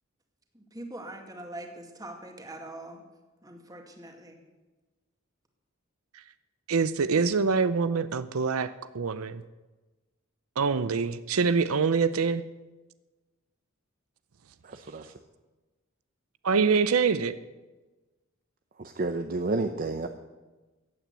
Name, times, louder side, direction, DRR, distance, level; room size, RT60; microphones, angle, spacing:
voice 1, 0.5-3.0 3.4-4.4, right 1 dB, 20° right, 3 dB, 2.2 m, -43 dB
voice 2, 6.7-8.7 8.9-9.4 10.6-12.4 16.4-17.3, right 5 dB, 90° right, 13 dB, 0.6 m, -25 dB
voice 3, 14.6-15.1 18.8-20.1, right 3 dB, 45° right, 7 dB, 0.7 m, -30 dB
15.5 x 9.2 x 8.2 m, 1.2 s
head